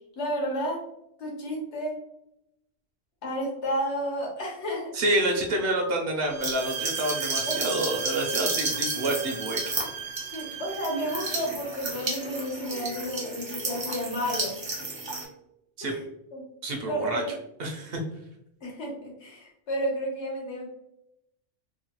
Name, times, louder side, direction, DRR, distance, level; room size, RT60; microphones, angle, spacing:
voice 1, 0.2-0.8 1.2-1.9 3.2-4.9 7.5-7.7 10.2-14.5 15.8-16.0 16.3-16.4 16.9-17.3 18.6-20.7, equal, 75° left, -2 dB, 1.2 m, -31 dB
voice 2, 4.9-9.6 15.8-15.9 16.6-17.2 17.6-18.0, right 1 dB, 65° right, 2 dB, 0.8 m, -28 dB
sound 1, 6.2-11.5, right 7 dB, 90° right, 0.9 m, -36 dB
sound 2, 6.4-15.2, right 2 dB, 30° right, 0.5 m, -33 dB
3.0 x 2.2 x 2.8 m, 0.81 s
omnidirectional pair, 1.2 m